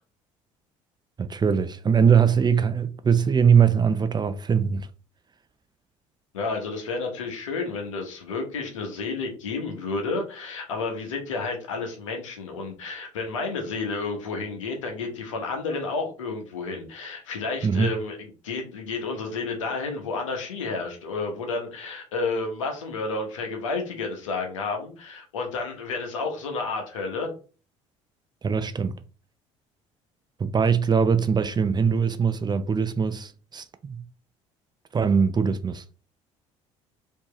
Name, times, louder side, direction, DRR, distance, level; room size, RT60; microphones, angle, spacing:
voice 1, 1.2-4.9 17.6-17.9 28.4-28.9 30.4-34.0 34.9-35.8, right 6 dB, 25° right, 0.5 m, -22 dB
voice 2, 6.3-27.3, left 3 dB, 90° left, 1.0 m, -31 dB
4.5 x 2.9 x 3.0 m
hypercardioid pair, 65°, 16 cm